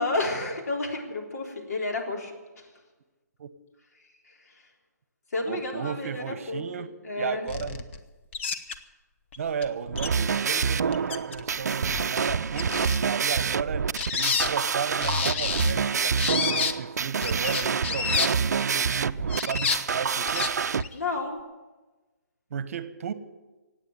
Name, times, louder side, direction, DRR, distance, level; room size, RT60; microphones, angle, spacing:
voice 1, 0.0-2.7 4.0-4.7 5.3-6.6 7.0-7.5 20.9-21.4, left 2 dB, 65° left, 0 dB, 3.8 m, -31 dB
voice 2, 5.4-6.9 7.2-7.8 9.4-20.5 22.5-23.1, right 6 dB, 50° right, 13 dB, 1.1 m, -34 dB
sound 1, 7.5-8.0 8.3-8.8 9.3-9.4 9.6-9.7 10.0-10.4 10.7-11.4 11.7-13.0 13.7-14.5 15.0-15.7 16.2-16.7 17.2-18.3 19.2-19.8 20.3-20.5 20.8-20.9, left 5 dB, 40° left, 1.1 m, -29 dB
sound 2, 9.9-20.8, right 6 dB, 70° right, 0.5 m, -27 dB
16.5 x 8.9 x 9.3 m, 1.2 s
hypercardioid pair, 150°, 9 cm